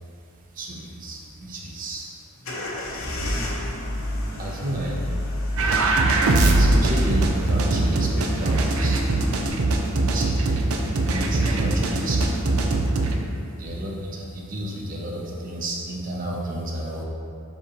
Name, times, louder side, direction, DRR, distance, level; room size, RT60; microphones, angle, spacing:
voice 1, 0.5-2.1 4.4-5.0 6.4-9.0 10.1-10.5 11.1-12.4 13.6-17.0, right 1 dB, 40° right, -3 dB, 0.7 m, -31 dB
sound 1, 2.4-9.5, equal, 70° left, 0.9 m, -31 dB
sound 2, 5.6-13.2, right 2 dB, 85° right, 0.6 m, -21 dB
7.1 x 4.9 x 3.0 m, 2.4 s
head